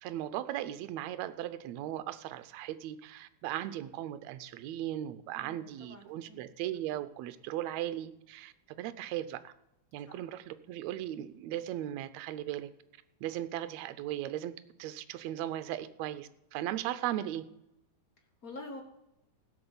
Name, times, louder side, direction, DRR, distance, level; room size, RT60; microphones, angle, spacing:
voice 1, 0.0-9.5 9.9-12.7 13.2-14.5 14.8-17.4, right 12 dB, 75° right, 12 dB, 1.9 m, -37 dB
voice 2, 5.3-6.4 10.1-10.4 18.2-18.8, left 2 dB, 80° left, 3 dB, 0.7 m, -48 dB
16.0 x 6.2 x 7.0 m, 0.87 s
omnidirectional pair, 3.4 m